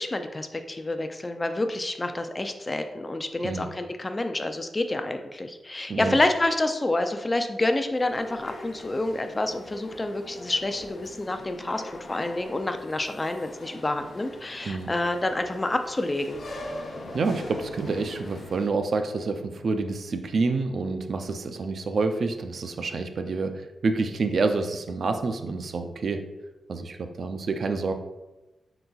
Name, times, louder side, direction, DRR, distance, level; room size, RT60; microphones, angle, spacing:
voice 1, 0.0-16.4, left 2 dB, 25° left, 7 dB, 0.4 m, -28 dB
sound 1, 7.9-18.7, left 1 dB, 50° left, 0.8 m, -42 dB
voice 2, 17.1-26.3 26.7-27.9, right 3 dB, 60° right, 7 dB, 0.4 m, -28 dB
5.5 x 3.9 x 2.3 m, 1.0 s
cardioid pair, 95°, 0 cm